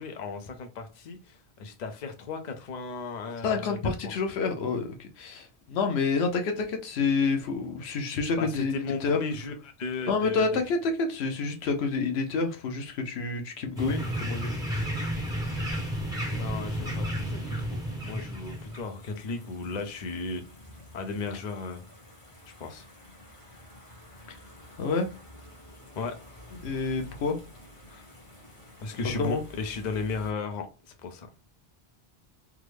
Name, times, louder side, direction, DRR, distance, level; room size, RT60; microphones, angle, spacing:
voice 1, 0.0-4.1 8.4-10.5 16.3-20.4 20.9-21.8 22.6-22.8 26.0-26.2 28.8-31.3, left 3 dB, 50° left, 0.7 m, -35 dB
voice 2, 3.4-9.2 10.1-14.5 24.8-25.1 26.6-27.4 27.9-28.0 29.2-29.4, left 4 dB, 90° left, 0.9 m, -28 dB
sound 1, 13.8-18.8, equal, 5° right, 0.9 m, -32 dB
sound 2, 16.7-30.3, equal, 30° left, 1.0 m, -51 dB
3.5 x 2.0 x 3.2 m
omnidirectional pair, 1.1 m